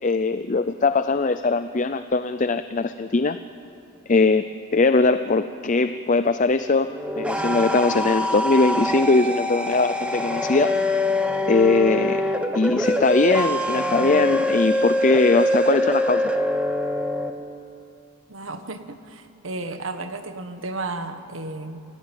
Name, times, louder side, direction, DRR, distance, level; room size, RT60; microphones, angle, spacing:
voice 1, 0.0-3.4 4.1-4.5 4.7-6.9 7.2-10.7 11.5-16.2, left 3 dB, 35° left, 11 dB, 0.5 m, -21 dB
sound 1, 6.9-17.3, left 1 dB, 5° right, 1.2 m, -24 dB
voice 2, 18.3-21.8, right 2 dB, 75° right, 8 dB, 1.6 m, -33 dB
28.5 x 18.0 x 9.1 m, 2.6 s
head